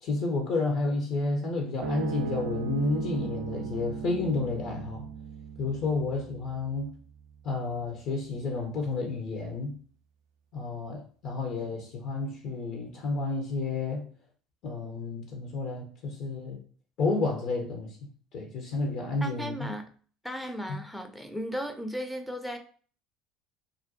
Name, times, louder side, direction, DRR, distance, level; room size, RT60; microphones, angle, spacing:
voice 1, 0.0-5.1 5.6-6.9 7.4-9.8 10.5-14.1 14.6-16.6 17.0-18.0 18.3-19.7 20.7-20.8, left 3 dB, 55° left, 0.5 m, -31 dB
sound 1, 1.8-8.5, right 6 dB, 70° right, 0.3 m, -38 dB
voice 2, 19.2-19.9 20.2-22.6, equal, 5° left, 0.4 m, -35 dB
2.5 x 2.2 x 2.5 m
figure-of-eight pair, 65°, 0 cm